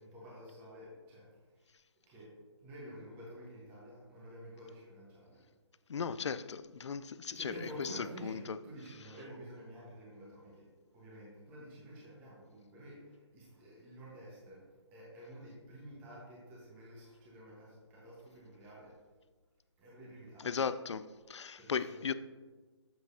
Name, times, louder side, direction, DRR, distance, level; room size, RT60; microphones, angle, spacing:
voice 1, 0.0-1.8 2.0-5.5 7.3-10.7 10.9-19.0 19.8-20.6 21.6-22.1, equal, 10° right, -6 dB, 1.2 m, -50 dB
voice 2, 5.9-8.6 20.4-22.1, left 6 dB, 70° left, 14 dB, 0.4 m, -37 dB
7.3 x 6.1 x 2.8 m, 1.3 s
figure-of-eight pair, 155°, 15 cm